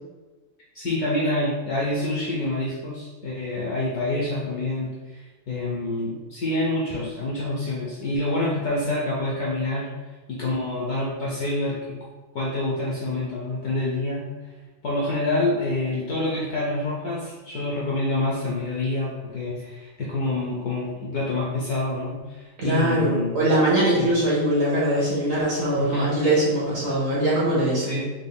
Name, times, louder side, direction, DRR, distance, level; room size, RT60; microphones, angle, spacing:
voice 1, 0.7-9.9 10.3-12.0 12.3-14.3 14.8-23.3 24.0-24.1 25.8-26.2 27.8-28.1, left 2 dB, 60° left, -5 dB, 1.0 m, -27 dB
voice 2, 22.6-28.0, right 1 dB, 50° right, -6 dB, 1.2 m, -22 dB
5.4 x 3.4 x 2.3 m, 1.3 s
omnidirectional pair, 2.2 m